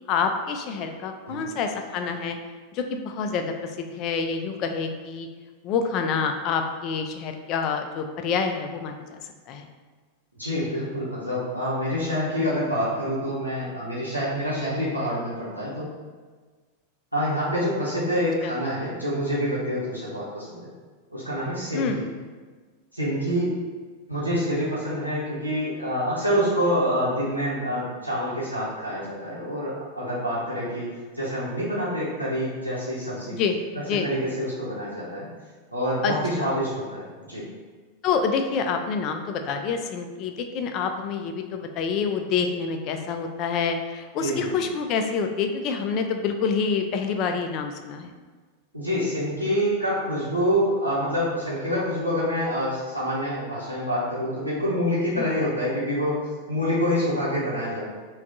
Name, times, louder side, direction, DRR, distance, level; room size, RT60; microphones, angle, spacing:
voice 1, 0.1-2.4 2.7-5.3 5.6-9.2 9.5-9.7 18.4-18.5 21.7-22.0 33.3-33.6 33.9-34.1 36.0-36.6 38.0-48.1 55.2-55.3, left 5 dB, 40° left, 5 dB, 0.4 m, -27 dB
voice 2, 10.4-15.9 17.1-20.7 21.1-22.1 22.9-23.5 24.1-33.4 33.7-35.3 35.7-37.4 44.2-44.6 48.7-57.8, equal, 90° right, -10 dB, 0.8 m, -27 dB
3.4 x 2.3 x 3.9 m, 1.4 s
figure-of-eight pair, 90°, 0 cm